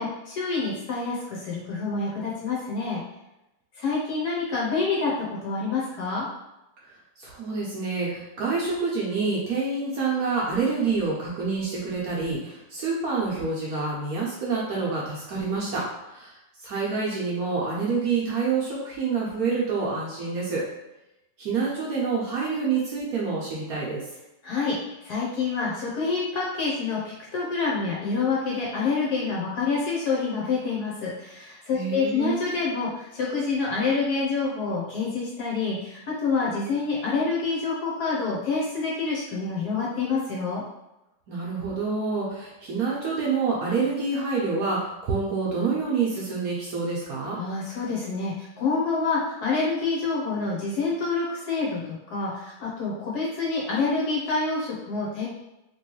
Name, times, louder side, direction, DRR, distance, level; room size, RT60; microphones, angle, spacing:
voice 1, 0.0-3.0 3.8-6.3 24.4-40.6 47.3-55.3, left 4 dB, 65° left, -4 dB, 1.1 m, -27 dB
voice 2, 7.2-20.6 21.4-24.0 31.7-32.4 41.3-47.4, right 4 dB, 65° right, -4 dB, 1.0 m, -27 dB
3.0 x 3.0 x 3.0 m, 0.94 s
omnidirectional pair, 2.1 m